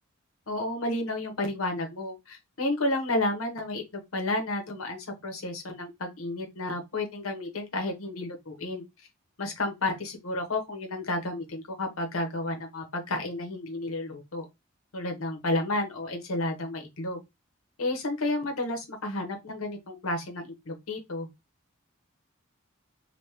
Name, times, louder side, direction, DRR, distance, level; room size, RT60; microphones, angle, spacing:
voice 1, 0.5-8.8 9.4-14.4 14.9-17.2 17.8-21.3, left 2 dB, 85° left, 1.0 m, -31 dB
3.5 x 2.8 x 2.8 m
head